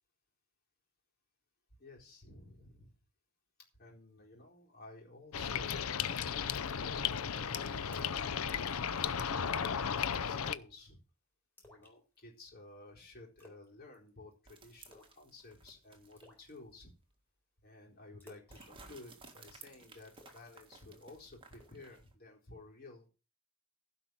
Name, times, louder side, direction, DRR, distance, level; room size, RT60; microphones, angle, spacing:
voice 1, 1.8-2.9 3.8-11.0 11.6-16.9 17.6-23.1, left 2 dB, 45° left, -1 dB, 4.2 m, -54 dB
sound 1, 5.3-10.5, left 7 dB, 75° left, 0.6 m, -35 dB
Splash splatter, 6.3-6.6 7.0-7.1 7.5-7.6 7.8-8.3 8.6-8.8 9.1-9.5 10.4-10.8 11.6-12.5 13.4-13.7 13.9-14.3 14.9-15.2 15.5-15.6 16.2-16.5 18.2-19.5 20.1-21.1 21.5-21.8, left 1 dB, 10° left, 3.8 m, -60 dB
sound 2, 14.5-16.7 17.1-17.2 18.5-22.1, right 4 dB, 25° right, 1.8 m, -57 dB
15.5 x 5.5 x 6.1 m, 0.35 s
head